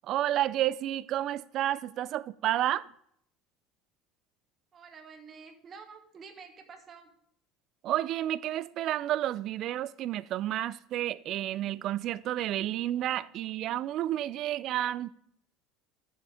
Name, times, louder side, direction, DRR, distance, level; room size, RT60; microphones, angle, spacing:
voice 1, 0.0-2.9 7.8-15.1, right 13 dB, 45° right, 0.3 m, -30 dB
voice 2, 4.7-7.1, right 5 dB, 30° right, 1.2 m, -49 dB
12.0 x 7.0 x 3.5 m
cardioid pair, 150°, 0 cm